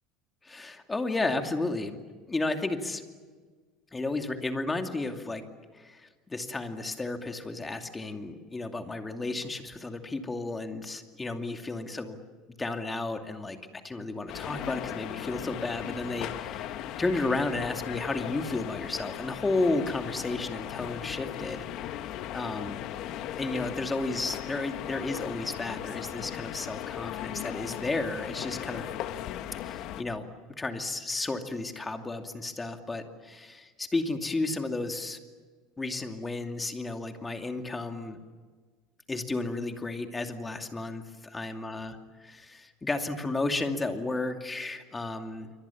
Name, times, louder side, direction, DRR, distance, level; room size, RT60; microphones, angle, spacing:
voice 1, 0.4-2.0 2.3-3.0 3.9-5.4 5.7-12.2 12.6-22.0 22.3-22.9 23.4-28.9 29.6-30.3 30.6-35.2 35.8-38.2 39.1-42.0 42.2-45.5, left 2 dB, 10° left, 5 dB, 2.5 m, -33 dB
sound 1, 14.3-30.0, left 12 dB, 55° left, 1.5 m, -37 dB
28.0 x 24.5 x 7.2 m, 1.5 s
cardioid pair, 145°, 0 cm